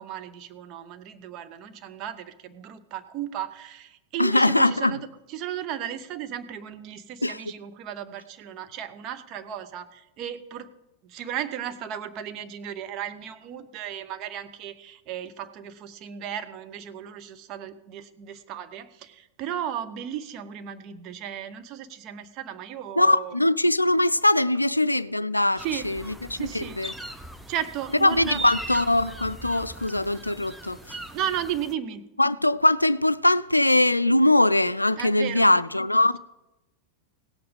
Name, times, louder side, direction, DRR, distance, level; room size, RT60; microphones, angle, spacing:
voice 1, 0.0-10.7 11.0-23.4 25.6-25.9 26.3-26.8 27.5-28.4 31.1-32.1 35.0-35.5, right 10 dB, 40° right, 0.9 m, -35 dB
voice 2, 4.2-4.9 7.2-7.4 23.0-26.9 28.0-31.0 32.2-36.2, left 1 dB, 85° left, 0.3 m, -22 dB
sound 1, 25.6-31.7, right 2 dB, 5° right, 0.7 m, -40 dB
17.0 x 7.8 x 5.3 m
figure-of-eight pair, 90°, 0 cm